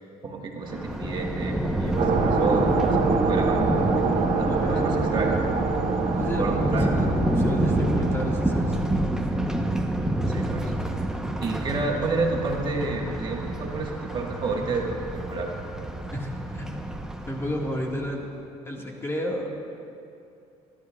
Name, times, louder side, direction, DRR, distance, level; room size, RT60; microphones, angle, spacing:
voice 1, 0.2-3.0 3.2-3.8 4.4-5.4 6.4-6.9 10.3-10.7 11.4-15.5, right 3 dB, 35° right, 0 dB, 1.5 m, -30 dB
Thunder, 0.6-18.0, right 1 dB, 5° right, 0.8 m, -28 dB
sound 1, 2.0-8.8, right 5 dB, 55° right, 1.1 m, -26 dB
voice 2, 4.5-5.4 6.1-7.1 7.4-8.9 16.1-16.8 17.3-18.3 18.7-19.5, equal, 20° left, -1 dB, 1.7 m, -32 dB
23.5 x 11.5 x 2.4 m, 2.6 s
cardioid pair, 105°, 13 cm